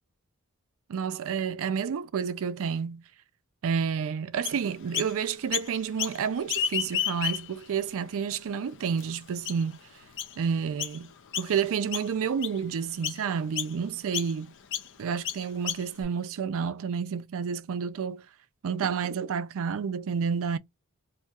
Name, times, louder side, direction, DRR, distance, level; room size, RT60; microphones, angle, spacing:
voice 1, 0.9-3.0 3.6-9.8 10.4-14.5 15.0-18.3 18.6-20.6, right 6 dB, 65° right, 0.4 m, -30 dB
Chirp tweet, 4.4-5.1 5.5-6.2 6.4-7.6 8.2-8.3 9.0-9.1 9.4-9.7 10.2-10.4 10.8-11.0 11.3-11.7 11.9-12.6 13.0-13.2 13.5-13.7 14.1-14.3 14.7-14.9 15.2-16.0, left 9 dB, 60° left, 0.6 m, -31 dB
2.7 x 2.3 x 4.1 m
head